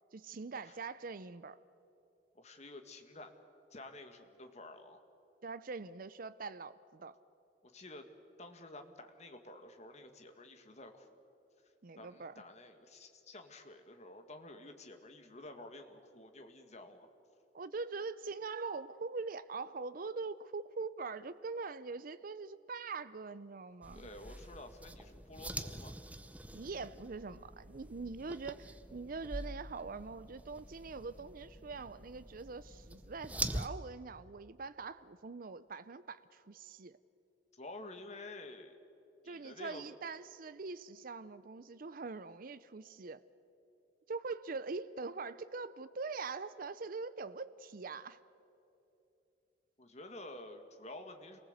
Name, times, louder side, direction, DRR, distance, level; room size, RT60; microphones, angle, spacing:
voice 1, 0.1-1.6 5.4-7.1 11.8-12.3 17.5-24.1 26.5-37.0 39.3-43.2 44.1-48.2, right 4 dB, 50° right, 14 dB, 0.6 m, -43 dB
voice 2, 2.3-3.3 3.7-5.0 7.6-8.1 8.4-11.2 12.0-17.1 23.9-25.9 37.5-38.8 39.2-39.9 49.8-51.4, left 2 dB, 40° left, 6 dB, 1.8 m, -51 dB
sound 1, 23.8-33.7, right 1 dB, 10° right, 0.7 m, -45 dB
27.0 x 19.5 x 8.0 m, 2.9 s
head